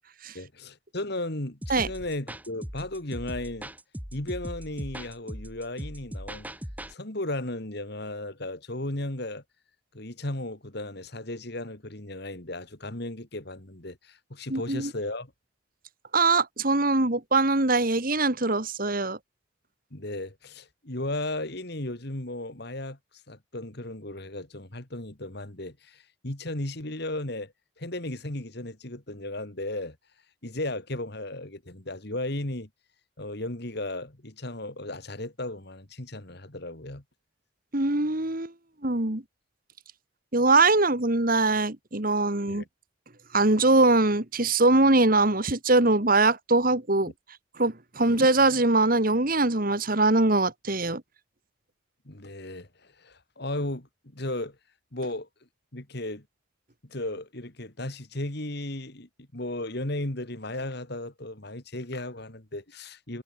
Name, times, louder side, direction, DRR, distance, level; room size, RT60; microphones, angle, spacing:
voice 1, 0.3-3.7 4.1-6.5 6.9-9.4 9.9-15.3 19.9-23.0 23.3-30.0 30.4-32.7 33.2-37.0 42.5-42.6 48.1-48.2 52.0-54.6 54.9-55.3 55.7-56.2 56.8-63.2, left 1 dB, 50° left, 2.4 m, -35 dB
sound 1, 1.6-6.9, equal, 10° right, 3.6 m, -39 dB
voice 2, 14.5-14.9 16.1-19.2 37.7-38.5 38.8-39.2 40.3-42.6 43.3-47.1 47.6-51.0, right 2 dB, 45° right, 1.9 m, -22 dB
head